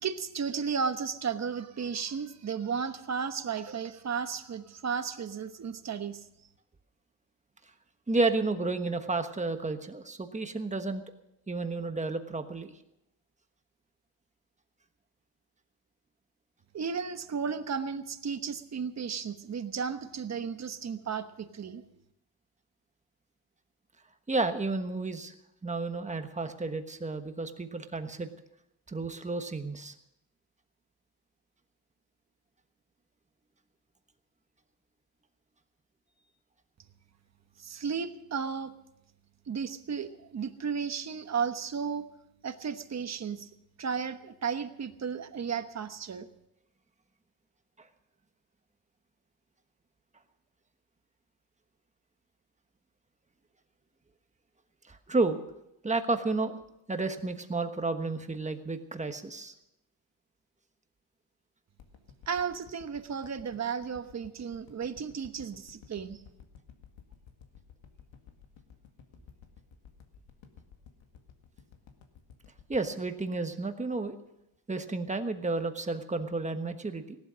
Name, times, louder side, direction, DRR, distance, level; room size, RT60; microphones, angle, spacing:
voice 1, 0.0-6.2 16.7-21.8 37.6-38.7 39.5-42.1 42.4-43.5 43.8-46.3 62.3-66.2, right 6 dB, 35° right, 9 dB, 1.1 m, -34 dB
voice 2, 8.1-11.0 11.5-12.7 24.3-25.3 25.6-28.3 28.9-29.9 47.8-47.9 54.9-55.4 55.8-56.6 56.9-59.5 72.7-74.2 74.7-77.2, right 3 dB, 15° right, 7 dB, 1.2 m, -31 dB
sound 1, 61.8-74.1 74.5-74.6, left 7 dB, 80° left, 2.0 m, -54 dB
18.0 x 12.0 x 6.3 m, 0.85 s
cardioid pair, 135°, 45 cm